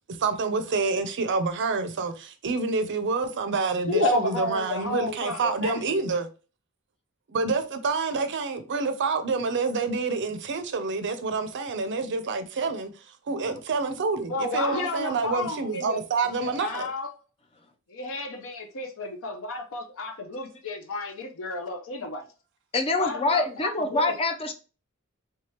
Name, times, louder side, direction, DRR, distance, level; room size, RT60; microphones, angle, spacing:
voice 1, 0.2-6.3 7.3-12.9 13.3-16.9, right 4 dB, 55° right, 0.5 m, -28 dB
voice 2, 3.9-6.0 14.3-16.0 16.4-17.1 17.9-22.3 23.0-24.2, left 2 dB, 65° left, 0.7 m, -31 dB
voice 3, 22.7-24.5, left 3 dB, 25° left, 0.5 m, -25 dB
3.4 x 3.3 x 2.8 m
head